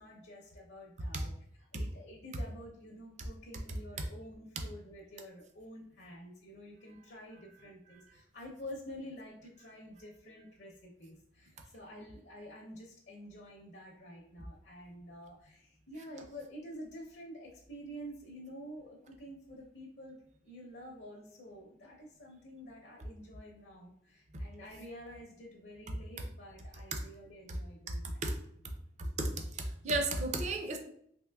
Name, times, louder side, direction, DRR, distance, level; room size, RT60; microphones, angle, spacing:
voice 1, 0.0-1.3 1.7-28.3, equal, 70° left, -2 dB, 0.7 m, -49 dB
voice 2, 27.9-28.4 29.0-30.8, right 2 dB, 40° right, 4 dB, 0.5 m, -34 dB
3.6 x 2.8 x 2.3 m, 0.69 s
head